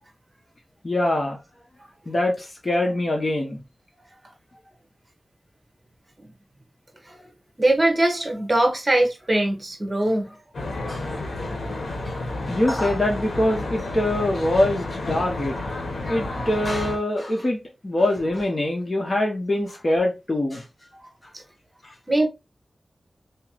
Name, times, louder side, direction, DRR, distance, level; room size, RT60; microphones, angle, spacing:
voice 1, 0.8-1.4 2.1-3.6 10.9-11.0 12.1-12.2 12.5-15.5 16.1-20.6, left 1 dB, 45° left, 1.3 m, -23 dB
voice 2, 7.6-10.3 22.1-22.3, right 1 dB, 30° right, 1.2 m, -21 dB
Traffic noise roadway noise, 10.5-17.0, left 2 dB, 75° left, 1.1 m, -31 dB
3.3 x 3.1 x 2.9 m
wide cardioid pair, 60°, 0 cm